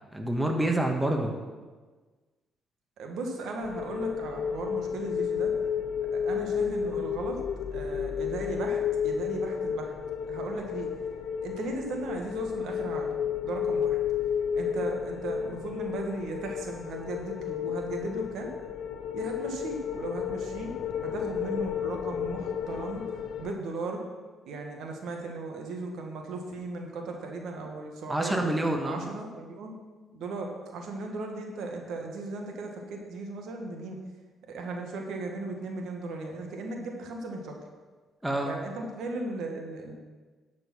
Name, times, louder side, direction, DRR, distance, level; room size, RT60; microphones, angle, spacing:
voice 1, 0.1-1.3 28.1-29.0 38.2-38.5, right 1 dB, 10° right, 2 dB, 1.4 m, -27 dB
voice 2, 3.0-5.5 6.1-7.4 7.7-9.9 10.3-10.9 11.4-13.2 13.4-14.0 14.5-18.5 19.1-20.7 21.0-24.0 24.5-28.4 28.8-29.8 30.1-34.0 34.5-37.6 38.4-40.0, right 2 dB, 80° right, 2 dB, 1.7 m, -36 dB
sound 1, 3.6-23.5, left 8 dB, 75° left, 0.6 m, -32 dB
11.5 x 5.3 x 6.2 m, 1.4 s
cardioid pair, 90°, 0 cm